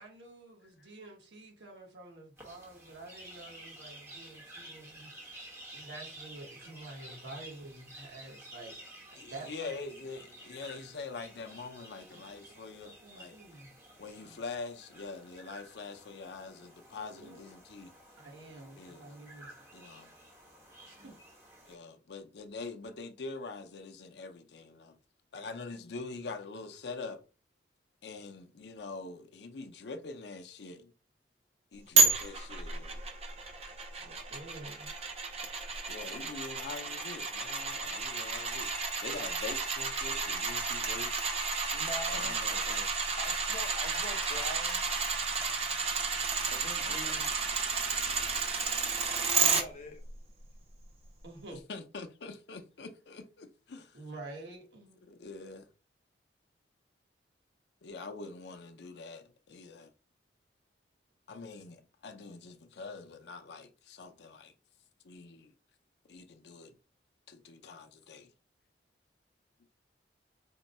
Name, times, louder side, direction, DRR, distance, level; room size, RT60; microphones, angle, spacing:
voice 1, 0.0-5.4 5.7-8.7 9.1-9.7 11.3-11.6 12.1-12.3 12.7-13.7 14.1-14.4 17.2-17.4 18.2-19.5 20.9-21.2 32.0-32.1 34.0-34.9 51.2-51.6 53.9-55.0, right 2 dB, 75° right, 1.2 m, -49 dB
sound 1, 2.4-21.7, right 1 dB, 15° right, 1.1 m, -52 dB
voice 2, 9.2-13.4 14.0-17.9 18.8-19.1 19.7-20.1 21.7-25.0 25.3-27.2 28.0-30.9 31.7-33.0 34.2-34.3 35.9-41.4 42.1-43.1 46.8-47.2 51.5-54.0 55.0-55.7 57.8-59.9 61.3-64.5 65.0-65.5 66.1-66.7 67.3-68.3, left 4 dB, 70° left, 0.5 m, -44 dB
sound 2, 32.0-49.6 50.1-50.2, right 4 dB, 35° right, 0.6 m, -31 dB
voice 3, 41.7-42.4 43.2-44.8 46.5-47.3 49.3-50.0, left 1 dB, 40° left, 0.8 m, -43 dB
3.6 x 2.2 x 4.1 m
head